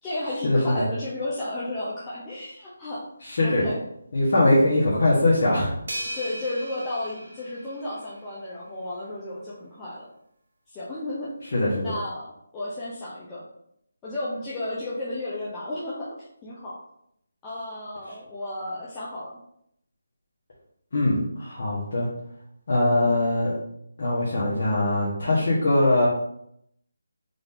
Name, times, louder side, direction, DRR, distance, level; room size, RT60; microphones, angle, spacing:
voice 1, 0.0-3.0 3.4-3.8 6.1-10.1 10.7-11.3 11.8-13.4 14.0-16.8 17.4-19.4, left 1 dB, 10° left, -9 dB, 0.6 m, -33 dB
voice 2, 3.2-3.6 4.1-5.7 11.5-11.9 20.9-22.1 22.7-23.5 24.0-26.1, left 1 dB, 50° left, -7 dB, 1.2 m, -21 dB
sound 1, 5.9-8.4, right 1 dB, 65° right, 1.0 m, -37 dB
3.9 x 2.6 x 3.6 m, 0.75 s
figure-of-eight pair, 170°, 0 cm